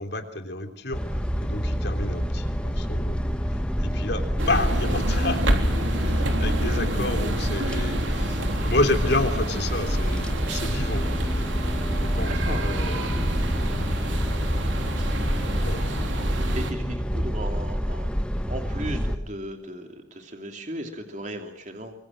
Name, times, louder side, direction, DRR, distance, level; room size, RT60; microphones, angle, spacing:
voice 1, 0.0-11.3 11.9-13.3 15.0-15.9, left 2 dB, 60° left, 7 dB, 3.4 m, -31 dB
sound 1, 0.9-19.2, equal, 5° left, 1.5 m, -28 dB
sound 2, 2.4-17.3, equal, 25° left, 3.6 m, -38 dB
sound 3, 4.4-16.7, right 1 dB, 85° right, 3.5 m, -28 dB
voice 2, 12.3-12.7 16.5-18.1 18.5-21.9, right 1 dB, 40° right, 5 dB, 2.8 m, -36 dB
25.0 x 24.5 x 7.6 m, 0.68 s
head